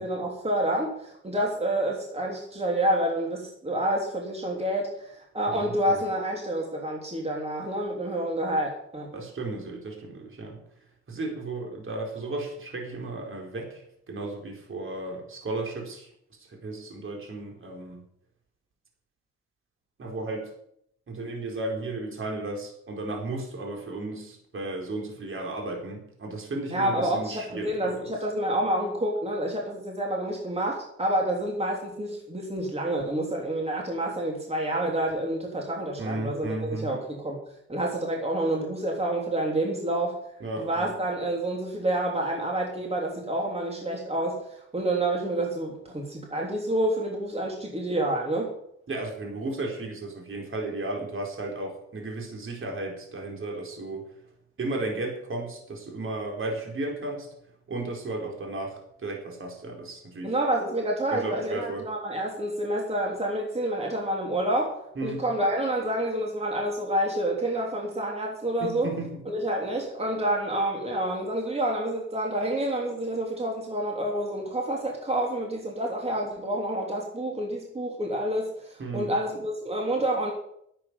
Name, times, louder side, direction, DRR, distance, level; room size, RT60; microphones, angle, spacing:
voice 1, 0.0-9.1 26.7-37.4 37.7-40.2 40.6-48.5 60.2-68.9 69.2-80.3, right 1 dB, 20° right, 0 dB, 3.2 m, -28 dB
voice 2, 5.5-6.0 9.1-10.6 11.1-13.8 14.1-16.1 16.5-18.0 20.0-20.5 21.1-28.1 36.0-36.9 40.4-40.9 48.9-54.1 54.6-57.3 57.7-60.3 61.1-61.8 65.0-65.2 68.6-69.2 78.8-79.1, right 2 dB, 45° right, 0 dB, 4.5 m, -34 dB
11.0 x 8.7 x 8.3 m, 0.72 s
cardioid pair, 90°, 30 cm